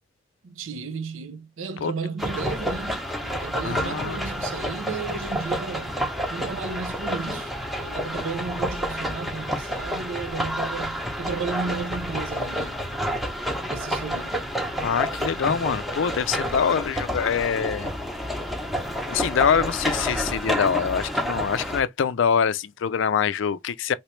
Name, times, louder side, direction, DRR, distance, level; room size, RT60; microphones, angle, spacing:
voice 1, 0.4-6.0 6.3-12.8 13.7-14.4, right 4 dB, 75° right, 0.5 m, -34 dB
sound 1, 2.2-21.8, equal, ahead, 0.9 m, -29 dB
voice 2, 3.6-4.2 14.8-17.9 19.1-23.9, left 7 dB, 70° left, 0.4 m, -24 dB
3.1 x 2.9 x 3.1 m
head